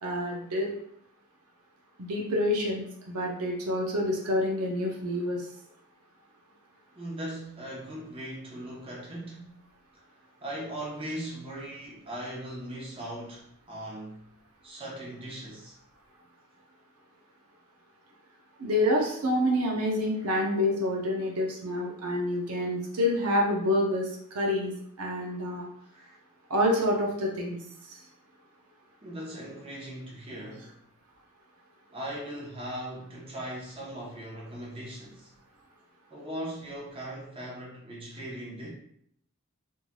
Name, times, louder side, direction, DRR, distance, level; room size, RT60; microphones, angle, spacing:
voice 1, 0.0-0.7 2.0-5.5 18.6-24.7 25.0-25.7 26.5-27.6 27.9-28.0, left 1 dB, 80° right, 0.6 m, -27 dB
voice 2, 7.0-9.7 9.9-10.0 10.4-14.3 14.6-15.8 25.9-26.2 29.0-30.7 31.9-35.3 36.1-38.7, right 1 dB, 25° right, 0.8 m, -39 dB
3.1 x 2.6 x 2.2 m
head